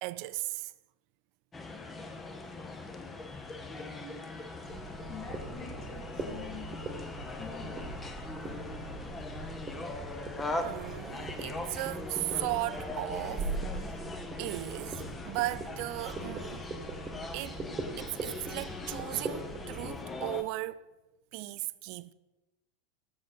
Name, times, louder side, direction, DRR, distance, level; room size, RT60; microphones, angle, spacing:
voice 1, 0.0-0.7 10.5-13.9 14.4-16.6 17.3-17.6 18.0-20.8 21.3-22.1, right 19 dB, 45° right, 0.4 m, -36 dB
sound 1, 1.5-20.4, left 2 dB, 15° left, 0.8 m, -41 dB
voice 2, 3.7-4.2 4.7-6.7 7.4-7.9, left 5 dB, 40° left, 1.8 m, -46 dB
sound 2, 4.7-19.9, right 3 dB, 20° right, 1.3 m, -41 dB
7.5 x 6.2 x 6.0 m
figure-of-eight pair, 90°, 0 cm